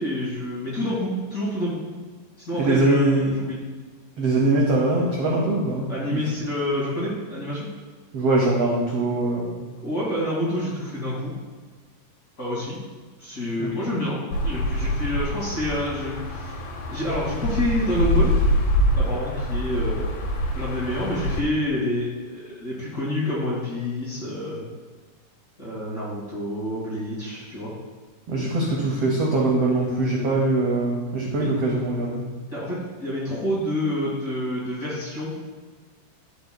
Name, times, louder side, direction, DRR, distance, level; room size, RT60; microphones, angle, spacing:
voice 1, 0.0-1.8 2.5-3.6 5.9-7.7 9.8-11.3 12.4-12.8 13.2-14.2 14.4-16.6 16.9-18.3 18.9-20.1 20.5-24.6 25.6-27.7 31.4-31.5 32.5-35.3, left 1 dB, 30° left, -8 dB, 1.9 m, -28 dB
voice 2, 2.6-3.3 4.2-6.2 8.1-9.6 13.6-13.7 28.3-32.2, right 2 dB, 75° right, -2 dB, 1.4 m, -22 dB
sound 1, 14.3-21.4, equal, 85° left, 2.7 m, -25 dB
12.5 x 5.4 x 2.2 m, 1.4 s
omnidirectional pair, 4.0 m